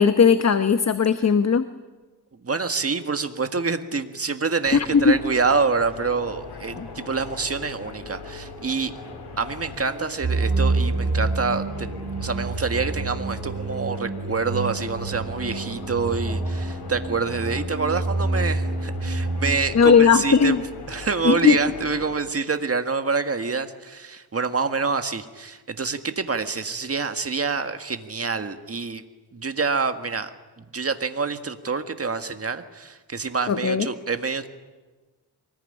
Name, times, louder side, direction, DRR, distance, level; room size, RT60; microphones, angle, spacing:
voice 1, 0.0-1.6 4.7-5.2 6.8-6.9 19.7-20.6 21.2-21.6 33.5-33.9, left 5 dB, 40° left, 10 dB, 1.0 m, -17 dB
voice 2, 2.4-8.9 9.4-29.0 29.3-30.3 30.6-34.5, right 4 dB, 35° right, 8 dB, 1.7 m, -27 dB
sound 1, 4.6-22.2, left 3 dB, 90° left, 4.0 m, -39 dB
sound 2, 10.2-19.5, right 3 dB, 65° right, 3.5 m, -27 dB
24.0 x 20.5 x 10.0 m, 1.3 s
wide cardioid pair, 95°, 39 cm